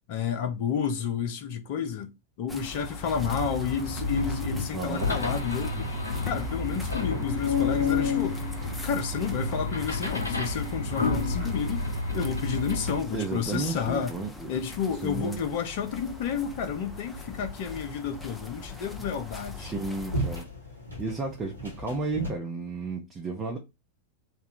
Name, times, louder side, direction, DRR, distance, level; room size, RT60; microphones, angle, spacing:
voice 1, 0.1-2.1 2.4-5.9 6.3-11.9 12.1-14.1 14.5-19.7, left 7 dB, 50° left, 0.6 m, -31 dB
sound 1, 2.5-20.4, left 2 dB, 5° left, 0.8 m, -42 dB
sound 2, 3.1-13.0, left 3 dB, 75° left, 1.0 m, -30 dB
voice 2, 4.7-5.1 13.1-14.5 15.0-15.4 19.6-20.5 21.0-23.6, right 3 dB, 20° right, 0.9 m, -33 dB
sound 3, 15.7-22.3, right 1 dB, 90° right, 1.5 m, -38 dB
3.4 x 2.4 x 4.3 m
figure-of-eight pair, 90°, 0 cm